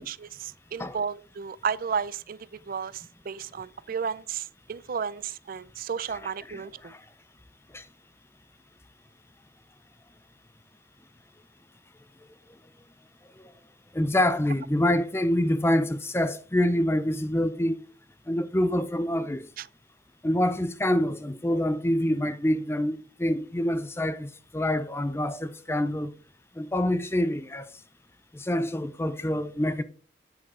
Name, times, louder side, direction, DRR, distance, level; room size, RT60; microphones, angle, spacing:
voice 1, 0.0-2.4 2.7-6.9 19.6-19.7, right 6 dB, 50° right, 0.4 m, -33 dB
voice 2, 6.1-7.0 7.7-7.8 13.4-13.5 13.9-17.8 18.3-19.4 20.2-26.1 26.6-27.7 28.3-29.8, left 1 dB, 15° left, 0.5 m, -26 dB
8.6 x 6.6 x 3.7 m
head